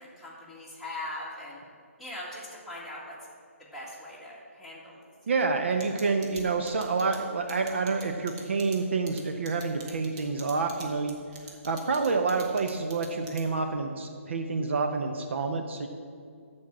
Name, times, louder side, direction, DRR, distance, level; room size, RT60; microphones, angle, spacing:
voice 1, 0.0-1.6 2.0-3.2 3.7-5.0 6.0-6.1, left 1 dB, ahead, -7 dB, 2.0 m, -40 dB
voice 2, 5.3-11.2 11.6-15.9, right 4 dB, 55° right, 5 dB, 0.8 m, -28 dB
sound 1, 5.8-13.7, right 3 dB, 25° right, 1.5 m, -45 dB
13.5 x 4.5 x 7.4 m, 2.2 s
figure-of-eight pair, 140°, 8 cm